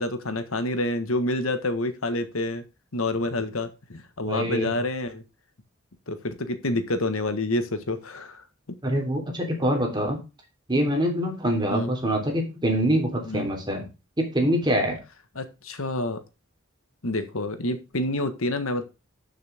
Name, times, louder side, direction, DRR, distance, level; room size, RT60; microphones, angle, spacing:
voice 1, 0.0-2.6 2.9-5.2 6.1-8.4 11.7-11.9 13.3-13.5 15.3-16.2 17.0-18.8, left 1 dB, 85° left, 9 dB, 1.5 m, -28 dB
voice 2, 4.2-4.8 8.8-10.2 10.7-13.9 14.2-15.0, equal, 20° right, 1 dB, 3.4 m, -25 dB
12.5 x 6.5 x 3.5 m, 0.28 s
head